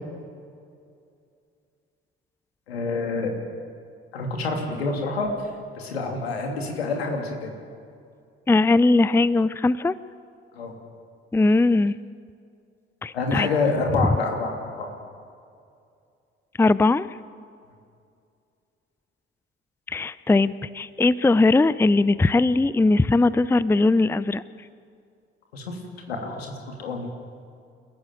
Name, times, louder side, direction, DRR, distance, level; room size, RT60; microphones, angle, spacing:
voice 1, 2.7-3.3 4.1-5.3 5.8-7.5 10.5-10.7 13.1-14.9 25.5-25.8 26.1-27.1, left 3 dB, 80° left, 2 dB, 2.8 m, -27 dB
voice 2, 8.5-9.9 11.3-11.9 13.0-13.5 16.6-17.1 19.9-24.4, left 3 dB, 10° left, 18 dB, 0.6 m, -20 dB
28.5 x 14.5 x 9.2 m, 2.4 s
figure-of-eight pair, 45°, 31 cm